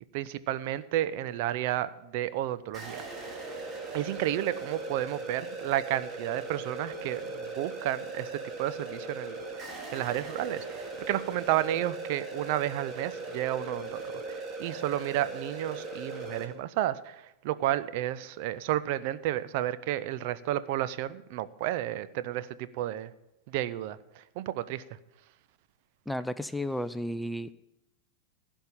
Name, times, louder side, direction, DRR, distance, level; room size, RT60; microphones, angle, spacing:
voice 1, 0.1-3.0 3.9-23.1 23.5-24.8, right 13 dB, 45° right, 15 dB, 0.6 m, -32 dB
sound 1, 2.7-16.4, right 3 dB, 25° right, 2.3 m, -39 dB
voice 2, 26.1-27.5, left 1 dB, 5° left, 14 dB, 0.4 m, -33 dB
16.0 x 5.4 x 8.7 m, 0.89 s
figure-of-eight pair, 90°, 0 cm